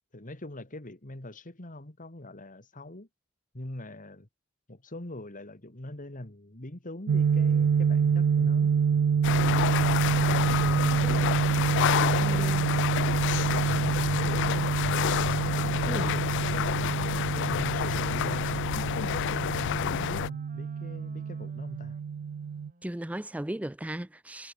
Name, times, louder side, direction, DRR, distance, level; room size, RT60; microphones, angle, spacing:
voice 1, 0.1-3.1 3.5-4.3 4.7-8.7 10.4-11.0 11.5-11.7 12.0-14.7 15.4-18.6 19.1-22.0, left 1 dB, 40° left, 2.3 m, -42 dB
sound 1, 7.1-22.7, right 6 dB, 65° right, 0.4 m, -27 dB
sound 2, 9.2-20.3, left 9 dB, 55° left, 0.3 m, -29 dB
voice 2, 12.2-12.7 15.9-16.1 22.8-24.5, right 1 dB, 5° right, 0.5 m, -36 dB
Wind instrument woodwind instrument, 14.8-23.0, right 3 dB, 40° right, 6.8 m, -57 dB
head